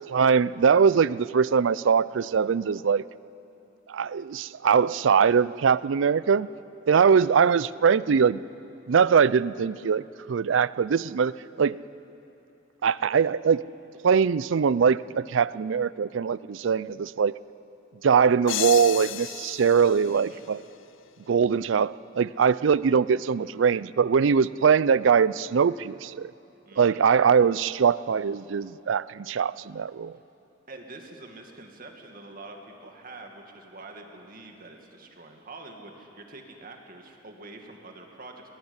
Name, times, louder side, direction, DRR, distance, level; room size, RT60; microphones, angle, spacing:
voice 1, 0.1-3.0 3.9-6.5 6.9-8.4 8.9-11.3 11.6-11.8 12.8-13.6 14.0-17.4 18.0-20.6 21.3-26.3 26.8-30.1, right 6 dB, 75° right, 19 dB, 0.4 m, -22 dB
sound 1, 18.5-21.1, left 12 dB, 80° left, 0.6 m, -34 dB
voice 2, 20.0-20.4 26.7-27.0 30.7-38.4, right 2 dB, 50° right, 3 dB, 2.1 m, -45 dB
19.0 x 18.0 x 9.8 m, 2.9 s
head